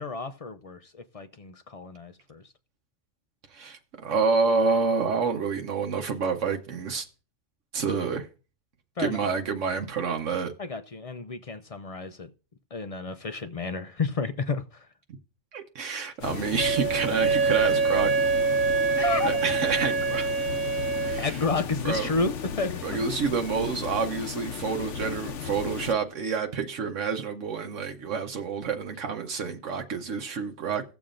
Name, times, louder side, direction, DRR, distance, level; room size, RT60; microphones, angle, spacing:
voice 1, 0.0-2.4 9.0-9.2 10.6-12.3 12.7-14.9 18.9-19.3 21.2-23.0, left 3 dB, 50° left, 0.4 m, -31 dB
voice 2, 3.5-7.1 7.7-8.3 9.0-10.5 15.5-18.1 19.2-20.5 21.0-21.4 21.8-22.1 22.8-30.8, right 5 dB, 75° right, 1.2 m, -28 dB
sound 1, 16.2-25.9, left 7 dB, 75° left, 1.0 m, -35 dB
Wind instrument woodwind instrument, 16.6-21.2, right 5 dB, 40° right, 1.3 m, -25 dB
17.0 x 7.0 x 2.5 m
omnidirectional pair, 1.3 m